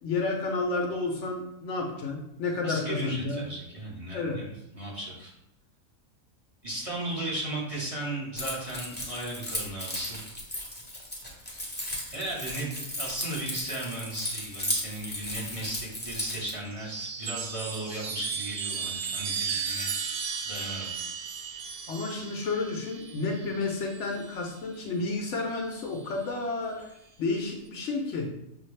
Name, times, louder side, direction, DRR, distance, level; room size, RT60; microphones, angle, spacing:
voice 1, 0.0-3.4 4.1-4.4 21.9-26.9 27.2-28.3, left 3 dB, 65° left, 1 dB, 0.9 m, -31 dB
voice 2, 2.6-5.3 6.6-10.3 12.1-12.7 13.0-19.9 20.4-21.1, right 1 dB, 30° right, -5 dB, 1.1 m, -36 dB
Keys jangling, 8.4-16.5, left 1 dB, 10° left, 0.8 m, -35 dB
Chime, 16.7-24.5 25.7-26.3, right 6 dB, 75° right, 1.0 m, -35 dB
6.1 x 2.4 x 3.1 m, 0.84 s
omnidirectional pair, 1.4 m